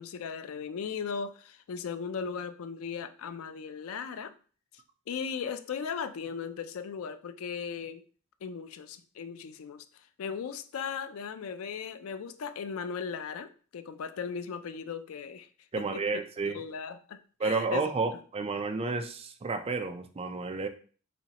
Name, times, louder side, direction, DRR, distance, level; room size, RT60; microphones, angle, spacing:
voice 1, 0.0-4.3 5.1-8.0 8.4-9.8 10.2-15.5 15.9-16.0 16.4-17.8, left 6 dB, 85° left, 11 dB, 0.4 m, -37 dB
voice 2, 15.7-16.6 17.4-20.7, right 4 dB, 30° right, 6 dB, 0.4 m, -31 dB
4.1 x 3.0 x 2.8 m, 0.41 s
head